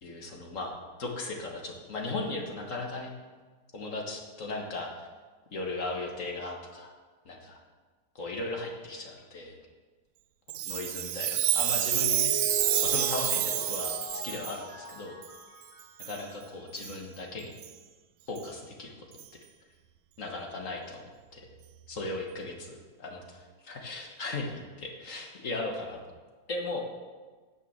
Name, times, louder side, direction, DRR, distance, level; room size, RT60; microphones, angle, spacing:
voice 1, 0.0-3.1 3.7-5.1 5.5-6.9 7.2-7.6 8.1-9.6 10.6-12.3 12.8-15.1 16.0-17.5 18.3-19.1 20.2-21.0 21.3-21.5 21.9-26.0 26.5-26.8, left 2 dB, 50° left, 1 dB, 1.7 m, -37 dB
Chime, 10.5-14.6 15.2-15.3 16.0-16.2 16.8-16.9 17.6-17.7 18.4-18.5 19.2-19.3, right 13 dB, 80° right, 1.2 m, -28 dB
Mallet percussion, 11.6-16.6, left 3 dB, 10° left, 3.4 m, -40 dB
9.5 x 7.2 x 7.0 m, 1.4 s
omnidirectional pair, 1.9 m